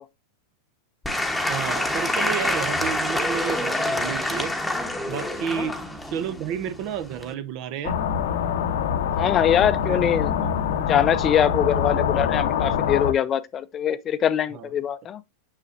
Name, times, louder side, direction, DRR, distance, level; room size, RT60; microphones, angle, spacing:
Applause / Crowd, 1.0-7.3, left 1 dB, 5° left, 1.1 m, -27 dB
voice 1, 1.5-4.5 5.1-5.8 6.1-8.0 9.9-10.2 14.5-14.7, right 8 dB, 50° right, 0.9 m, -31 dB
sound 1, 7.8-13.1, left 8 dB, 70° left, 0.8 m, -24 dB
voice 2, 9.1-10.4 10.8-15.2, left 9 dB, 30° left, 0.6 m, -23 dB
6.7 x 6.0 x 2.6 m
hypercardioid pair, 100°, 0 cm